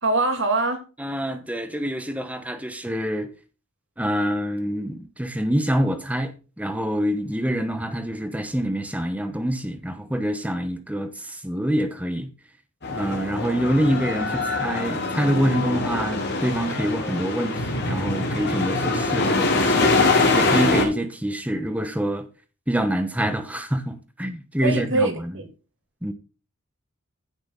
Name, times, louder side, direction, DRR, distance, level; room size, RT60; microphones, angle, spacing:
voice 1, 0.0-0.8 24.6-25.5, right 2 dB, 55° right, 2.8 m, -23 dB
voice 2, 1.0-3.3 4.0-12.3 12.9-19.9 20.3-22.3 22.7-25.4 26.0-26.1, equal, 5° right, 1.1 m, -26 dB
sound 1, 12.8-20.8, left 3 dB, 50° left, 4.4 m, -23 dB
15.5 x 6.2 x 4.0 m
head